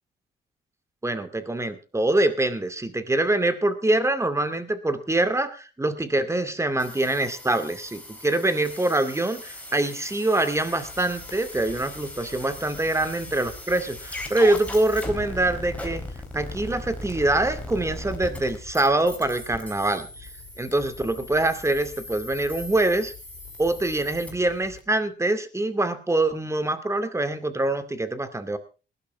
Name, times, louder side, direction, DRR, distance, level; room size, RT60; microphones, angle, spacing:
voice 1, 1.0-16.1 16.3-20.3 20.6-23.1 23.6-28.6, right 2 dB, 15° right, 11 dB, 2.3 m, -24 dB
sound 1, 6.8-24.3, left 1 dB, 5° left, 4.0 m, -39 dB
sound 2, 10.5-24.8, left 6 dB, 70° left, 4.6 m, -47 dB
20.0 x 12.0 x 3.5 m, 0.33 s
cardioid pair, 90°, 20 cm